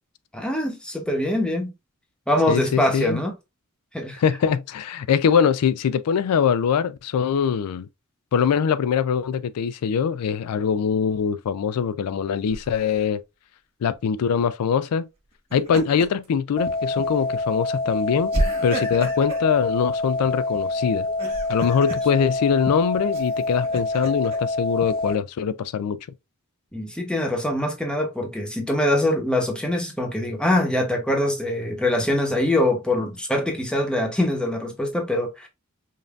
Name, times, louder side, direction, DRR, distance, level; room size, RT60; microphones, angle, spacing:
voice 1, 0.3-1.7 2.3-3.3 3.9-4.2 26.7-35.5, left 1 dB, 5° left, 0.8 m, -23 dB
voice 2, 2.5-3.2 4.2-7.9 8.3-13.2 13.8-15.1 15.5-18.3 18.6-21.1 21.5-26.0, left 7 dB, 90° left, 0.4 m, -23 dB
Laughter, 12.5-13.0 15.3-16.3 16.7-16.8 18.3-19.5 21.0-22.0 23.1-24.4, right 1 dB, 25° right, 1.4 m, -31 dB
sound 1, 16.6-25.2, left 2 dB, 40° left, 0.7 m, -26 dB
5.2 x 2.6 x 2.3 m
head